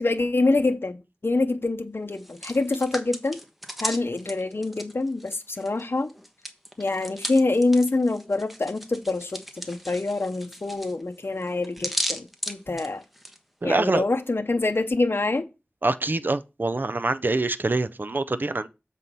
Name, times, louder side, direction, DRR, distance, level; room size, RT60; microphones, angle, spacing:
voice 1, 0.0-3.4 3.8-6.1 6.8-13.0 13.6-15.5, left 2 dB, 60° left, 0.7 m, -25 dB
Hands, 2.1-5.8 6.1-13.4, equal, 5° right, 1.1 m, -35 dB
voice 2, 13.6-14.0 15.8-18.7, right 2 dB, 50° right, 0.5 m, -25 dB
7.6 x 4.1 x 5.3 m
wide cardioid pair, 50°, 4 cm